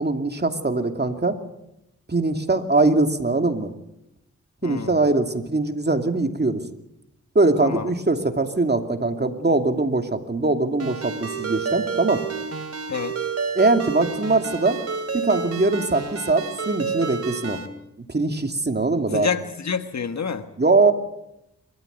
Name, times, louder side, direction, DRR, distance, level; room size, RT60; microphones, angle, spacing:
voice 1, 0.0-1.4 2.1-3.7 4.6-6.6 7.3-12.2 13.5-14.8 15.1-17.6 18.1-19.3 20.6-20.9, right 3 dB, 35° right, 6 dB, 2.7 m, -21 dB
voice 2, 4.6-5.0 7.6-7.9 12.9-13.1 19.1-20.4, left 6 dB, 65° left, 10 dB, 1.5 m, -27 dB
Ringtone, 10.8-17.7, right 5 dB, 55° right, 3.0 m, -30 dB
26.5 x 14.0 x 8.2 m, 0.85 s
cardioid pair, 45°, 30 cm